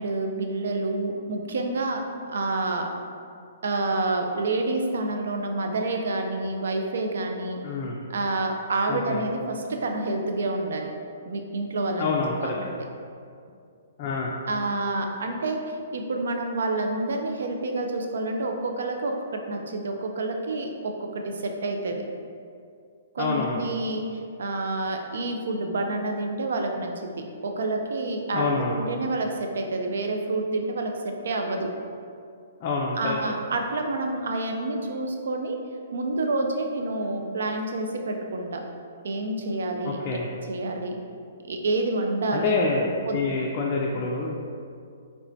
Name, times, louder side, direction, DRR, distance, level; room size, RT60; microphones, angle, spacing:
voice 1, 0.0-2.9 3.6-7.6 8.1-10.9 11.3-12.1 12.4-12.5 14.5-22.0 23.1-28.5 28.8-31.7 33.0-35.6 35.9-38.6 39.0-40.2 40.5-41.0 41.4-42.5 43.0-43.2, right 2 dB, 70° right, 3 dB, 0.4 m, -28 dB
voice 2, 7.6-8.0 8.9-9.2 12.0-12.7 14.0-14.3 23.2-23.6 28.3-28.8 32.6-33.1 39.8-40.3 42.3-44.4, left 3 dB, 40° left, -2 dB, 0.3 m, -27 dB
3.2 x 3.0 x 2.6 m, 2.3 s
hypercardioid pair, 125°, 0 cm